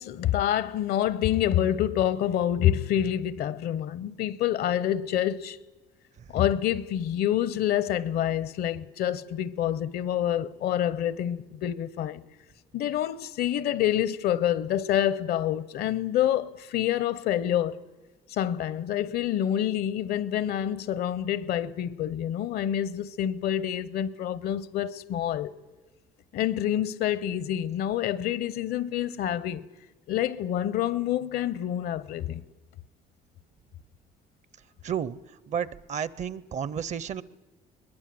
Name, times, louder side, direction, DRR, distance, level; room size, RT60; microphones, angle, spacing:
voice 1, 0.0-5.6 6.3-12.2 12.7-17.8 18.3-25.5 26.3-29.6 30.1-32.4, left 11 dB, 65° left, 0.7 m, -27 dB
voice 2, 34.8-35.2 35.5-37.2, right 8 dB, 45° right, 0.6 m, -31 dB
22.0 x 20.5 x 7.7 m
cardioid pair, 110°, 17 cm